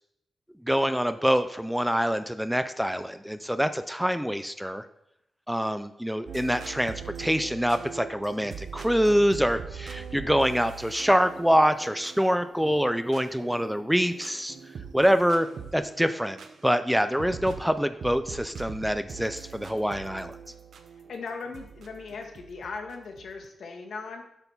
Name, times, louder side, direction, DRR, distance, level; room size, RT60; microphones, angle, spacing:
voice 1, 0.7-4.8 5.5-14.6 14.9-15.5 15.7-16.4 16.6-20.3, equal, ahead, 11 dB, 0.4 m, -25 dB
sound 1, 6.3-23.5, right 6 dB, 70° right, 0.8 m, -43 dB
voice 2, 21.1-24.2, left 4 dB, 75° left, 3 dB, 1.6 m, -38 dB
8.1 x 6.7 x 5.6 m, 0.79 s
wide cardioid pair, 155°, 0 cm